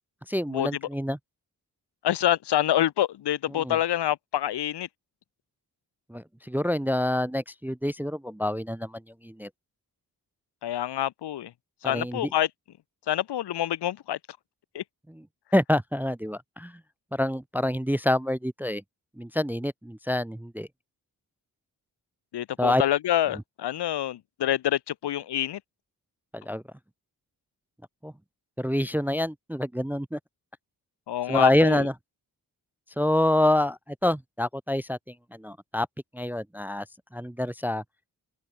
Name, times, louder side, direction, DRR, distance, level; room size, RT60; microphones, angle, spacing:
voice 1, 0.3-1.2 3.5-3.8 6.1-9.5 11.8-12.3 15.1-15.2 15.5-16.8 17.1-18.8 19.2-20.7 22.6-22.8 26.3-26.6 28.0-28.1 28.6-30.2 31.3-31.9 33.0-35.9 36.1-36.9 37.1-37.8, left 1 dB, 5° right, 0.4 m, -27 dB
voice 2, 2.0-4.9 10.6-11.5 11.8-12.5 13.1-14.2 14.7-14.8 22.3-25.6 31.1-31.9, left 12 dB, 85° left, 1.1 m, -26 dB
open air
cardioid pair, 45°, 40 cm